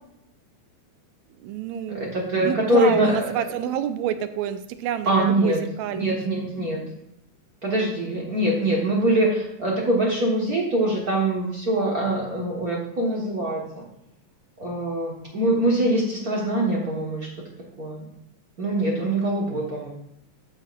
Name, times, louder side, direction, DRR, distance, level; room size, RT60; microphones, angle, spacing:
voice 1, 1.4-6.2, right 10 dB, 80° right, 10 dB, 1.8 m, -28 dB
voice 2, 1.9-3.2 5.1-5.6 5.9-6.8 7.6-13.8 14.6-17.3 17.8-18.0 18.6-19.9, right 1 dB, 45° right, -3 dB, 1.2 m, -23 dB
14.0 x 5.8 x 2.4 m, 0.80 s
omnidirectional pair, 3.4 m